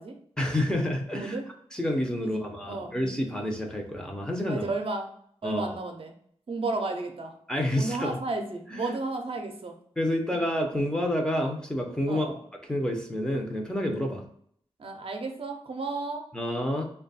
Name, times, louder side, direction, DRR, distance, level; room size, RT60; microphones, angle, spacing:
voice 1, 0.4-1.4 1.7-4.6 5.4-5.8 7.5-8.2 8.7-8.9 10.0-12.3 12.7-14.2 16.3-16.8, left 1 dB, 5° left, 1 dB, 0.6 m, -29 dB
voice 2, 2.2-2.9 4.5-5.1 5.4-6.1 6.5-7.3 7.8-9.7 12.1-12.4 14.8-16.2, right 3 dB, 60° right, 3 dB, 0.5 m, -33 dB
3.0 x 2.2 x 4.0 m, 0.64 s
wide cardioid pair, 115°, 11 cm